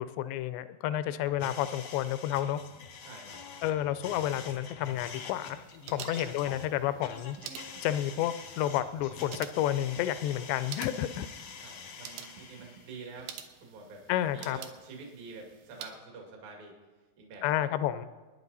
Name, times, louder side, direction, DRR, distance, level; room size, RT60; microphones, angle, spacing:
voice 1, 0.0-2.6 3.6-5.6 5.9-7.4 7.8-11.3 14.1-14.6 17.4-18.1, left 12 dB, 85° left, 13 dB, 2.8 m, -30 dB
sound 1, 1.4-13.0, left 6 dB, 65° left, 1.6 m, -46 dB
voice 2, 3.0-3.4 6.1-6.5 11.6-13.3 13.6-16.7 17.2-17.7, right 4 dB, 60° right, 0 dB, 3.9 m, -47 dB
sound 2, 4.8-16.0, right 9 dB, 85° right, 3.1 m, -49 dB
29.0 x 10.0 x 4.1 m, 1.3 s
omnidirectional pair, 4.9 m